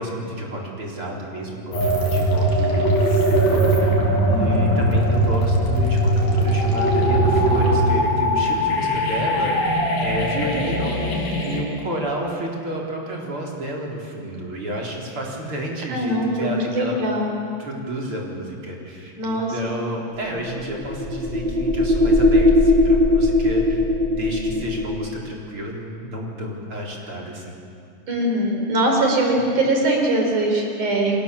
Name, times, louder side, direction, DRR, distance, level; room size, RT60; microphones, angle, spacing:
voice 1, 0.0-4.0 4.3-16.9 17.6-23.8 24.1-27.6, right 1 dB, 40° right, -2 dB, 4.9 m, -30 dB
sound 1, 1.7-11.6, right 1 dB, 85° left, 6.3 m, -20 dB
voice 2, 4.3-4.8 15.9-17.3 19.1-19.8 28.1-31.2, right 1 dB, 65° right, 1 dB, 5.7 m, -22 dB
sound 2, 20.2-25.1, left 2 dB, 15° right, 3.3 m, -19 dB
29.5 x 24.0 x 7.3 m, 2.5 s
omnidirectional pair, 3.9 m